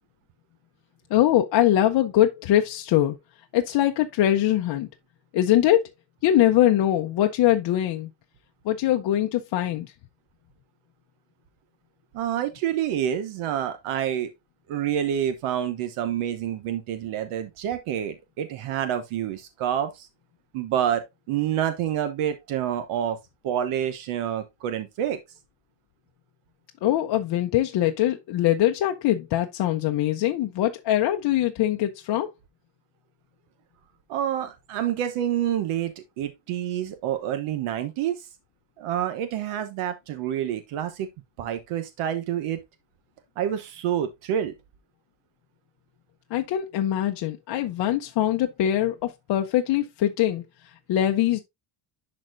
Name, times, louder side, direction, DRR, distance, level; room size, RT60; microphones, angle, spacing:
voice 1, 1.1-3.2 3.5-4.9 5.3-5.8 6.2-8.1 8.7-9.9 26.8-32.3 46.3-50.4 50.9-51.4, left 12 dB, 55° left, 0.7 m, -22 dB
voice 2, 12.1-14.3 14.7-20.1 20.5-21.0 21.3-23.2 23.4-25.2 34.1-38.3 38.8-41.1 41.4-42.6 43.4-44.5, right 10 dB, 85° right, 1.1 m, -28 dB
11.0 x 4.3 x 2.5 m
cardioid pair, 170°, 49 cm